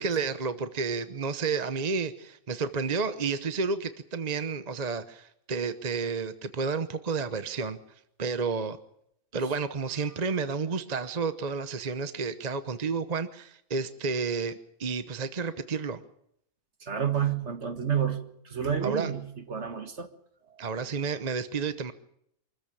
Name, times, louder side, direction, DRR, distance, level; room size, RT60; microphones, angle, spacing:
voice 1, 0.0-7.8 8.2-8.8 9.3-16.0 18.8-19.1 20.6-21.9, right 5 dB, 35° right, 0.9 m, -31 dB
voice 2, 16.8-20.1, right 8 dB, 55° right, 1.9 m, -30 dB
24.0 x 14.5 x 8.6 m
omnidirectional pair, 1.5 m